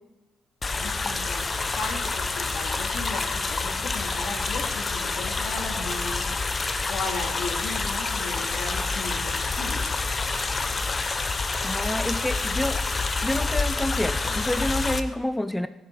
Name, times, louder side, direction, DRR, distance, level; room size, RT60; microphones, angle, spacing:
sound 1, 0.6-15.0, left 3 dB, 30° left, 0.7 m, -28 dB
voice 1, 0.8-6.3 6.9-9.9, left 3 dB, 75° left, 2 dB, 2.2 m, -36 dB
voice 2, 11.6-12.8 13.2-15.7, left 1 dB, 5° left, 12 dB, 0.4 m, -28 dB
16.5 x 6.9 x 4.6 m, 1.1 s
cardioid pair, 90°, 0 cm